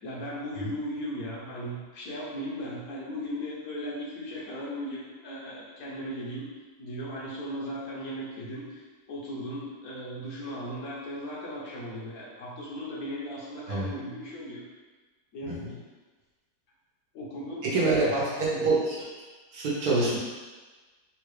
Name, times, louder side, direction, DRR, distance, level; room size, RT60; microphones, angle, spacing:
voice 1, 0.0-6.5 6.8-14.6 15.3-15.8 17.1-18.7, equal, 65° left, -5 dB, 1.2 m, -37 dB
voice 2, 17.6-19.0 19.5-20.2, right 3 dB, 70° right, -6 dB, 1.3 m, -26 dB
3.6 x 2.3 x 3.2 m, 1.3 s
omnidirectional pair, 1.7 m